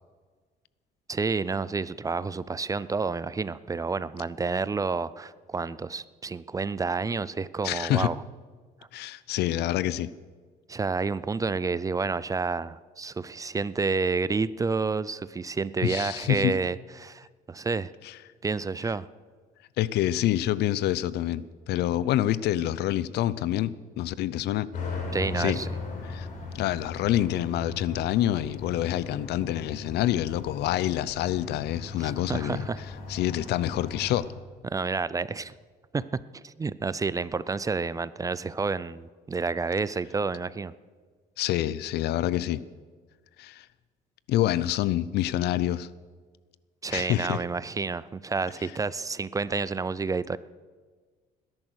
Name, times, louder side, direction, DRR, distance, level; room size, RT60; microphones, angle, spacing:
voice 1, 1.1-8.2 10.7-17.9 18.4-19.1 25.1-25.7 32.0-32.8 34.6-35.5 35.9-40.7 46.8-50.4, right 4 dB, 20° right, 18 dB, 0.5 m, -29 dB
voice 2, 7.6-8.1 8.9-10.1 15.8-16.6 18.0-18.2 19.8-24.7 25.4-25.6 26.1-26.3 26.5-32.7 33.1-34.3 41.4-42.6 43.4-43.7 44.3-45.9 46.9-47.4, left 13 dB, 75° left, 18 dB, 0.6 m, -27 dB
sound 1, 24.7-34.2, left 3 dB, 50° left, 5.2 m, -38 dB
19.5 x 11.0 x 6.4 m, 1.5 s
cardioid pair, 110°, 17 cm